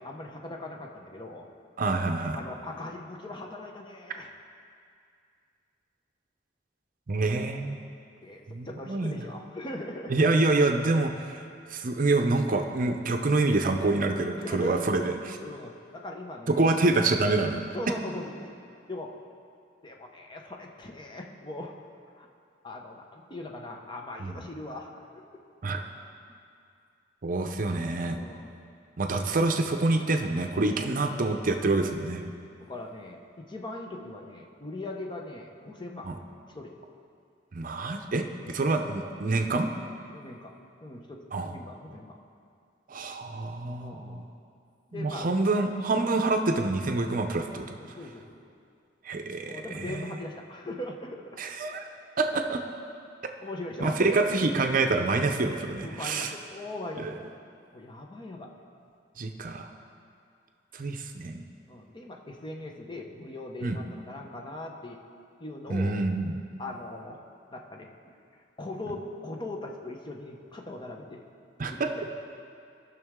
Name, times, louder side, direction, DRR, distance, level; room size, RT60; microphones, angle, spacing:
voice 1, 0.0-1.5 2.3-4.3 8.2-10.3 14.3-16.6 17.7-18.5 18.9-19.1 19.8-21.7 22.2-22.3 22.6-25.2 28.1-28.5 29.2-29.3 30.7-30.9 31.6-31.9 32.6-36.1 36.5-36.8 40.1-40.5 40.8-42.2 43.8-44.3 44.9-45.4 47.8-48.4 49.5-51.4 53.4-54.3 55.8-57.2 57.7-58.5 61.7-65.0 65.4-66.0 66.6-67.2 67.5-67.9 68.3-71.2 71.7-72.1, left 1 dB, 25° left, 1 dB, 0.8 m, -40 dB
voice 2, 1.8-2.4 7.1-7.8 8.5-9.1 10.1-11.4 11.7-15.1 16.5-17.6 24.2-24.4 25.6-25.8 27.2-28.2 29.0-32.2 36.1-36.2 37.5-39.7 41.3-41.5 42.9-44.2 44.9-47.8 49.0-50.0 51.4-51.9 52.2-52.6 53.8-56.3 57.0-57.1 59.2-59.7 60.7-61.4 63.6-63.8 65.7-66.4 71.6-71.9, right 3 dB, 50° right, 5 dB, 0.6 m, -26 dB
17.5 x 6.1 x 3.6 m, 2.4 s
head